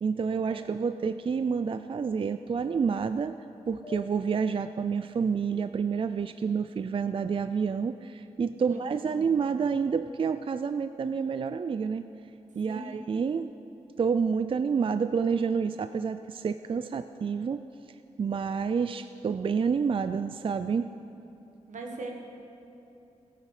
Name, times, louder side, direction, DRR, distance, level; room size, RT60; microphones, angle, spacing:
voice 1, 0.0-3.4 3.7-12.0 12.6-13.5 14.0-17.6 18.2-20.9, right 6 dB, 45° right, 11 dB, 0.4 m, -28 dB
sound 1, 3.8-6.8, left 2 dB, 10° left, 2.7 m, -50 dB
voice 2, 9.1-9.4 12.6-13.0 21.7-22.1, right 3 dB, 85° right, 1 dB, 1.6 m, -41 dB
16.0 x 9.0 x 4.9 m, 3.0 s
cardioid pair, 60°, 13 cm